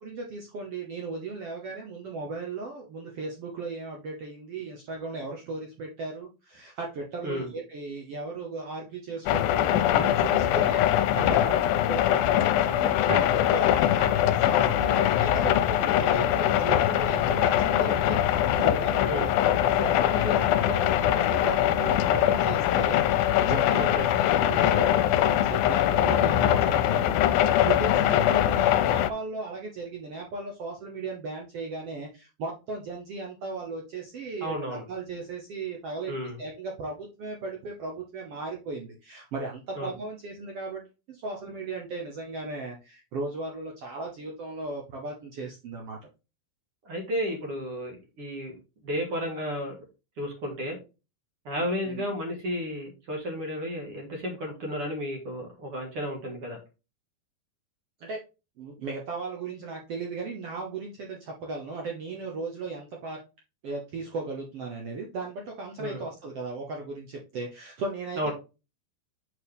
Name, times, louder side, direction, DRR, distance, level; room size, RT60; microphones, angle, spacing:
voice 1, 0.0-10.9 11.2-13.1 13.5-23.9 24.4-36.1 36.4-40.8 41.1-46.0 51.9-52.1 58.0-58.2 58.6-63.2 63.6-68.3, right 3 dB, 75° right, 1 dB, 1.4 m, -36 dB
sound 1, 9.3-29.1, left 11 dB, 90° left, 2.4 m, -23 dB
voice 2, 23.8-24.1 34.4-34.8 36.1-36.4 39.8-39.9 46.8-49.8 50.2-50.8 51.5-56.6 65.8-66.1 68.2-68.3, equal, 45° right, 2 dB, 2.2 m, -32 dB
6.5 x 6.3 x 3.5 m, 0.29 s
omnidirectional pair, 4.2 m